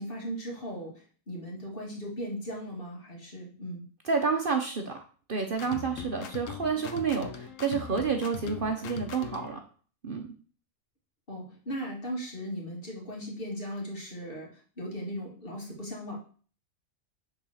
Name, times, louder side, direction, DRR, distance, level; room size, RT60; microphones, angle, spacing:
voice 1, 0.0-3.8 11.3-16.2, equal, 45° left, -1 dB, 2.3 m, -38 dB
voice 2, 4.0-4.9 5.3-9.6 10.0-10.3, right 5 dB, 50° right, 4 dB, 0.9 m, -29 dB
sound 1, 5.5-9.6, left 7 dB, 80° left, 1.2 m, -41 dB
7.0 x 3.9 x 6.3 m, 0.42 s
omnidirectional pair, 1.3 m